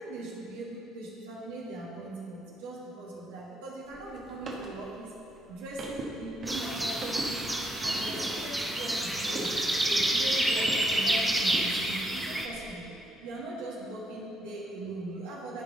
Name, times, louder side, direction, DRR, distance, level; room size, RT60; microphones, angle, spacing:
voice 1, 0.0-5.1 5.5-9.5 9.9-12.9 13.2-15.6, right 2 dB, 70° right, -5 dB, 1.8 m, -40 dB
sound 1, 3.8-10.9 11.2-12.7, right 2 dB, 45° right, 1.4 m, -42 dB
sound 2, 6.5-12.5, right 1 dB, 10° right, 1.0 m, -29 dB
14.0 x 5.2 x 3.8 m, 2.9 s
hypercardioid pair, 65°, 0 cm